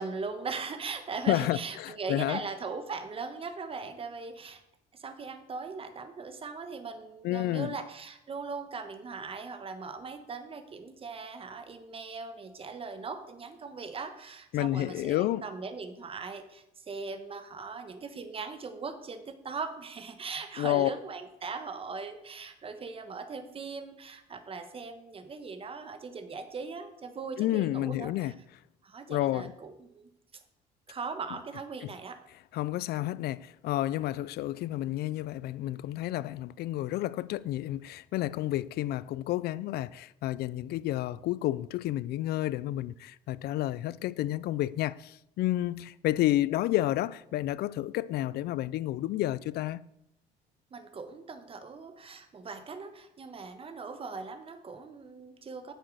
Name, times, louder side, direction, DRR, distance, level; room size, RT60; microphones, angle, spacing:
voice 1, 0.0-4.6 4.9-28.3 28.8-30.1 30.9-32.2 50.7-55.7, right 4 dB, 35° right, 1.3 m, -40 dB
voice 2, 1.3-2.4 7.2-7.7 14.5-15.4 20.6-20.9 27.4-28.3 29.1-29.5 31.8-31.9 32.5-49.8, left 14 dB, 70° left, 0.4 m, -30 dB
8.9 x 6.8 x 6.3 m
cardioid pair, 110°, 17 cm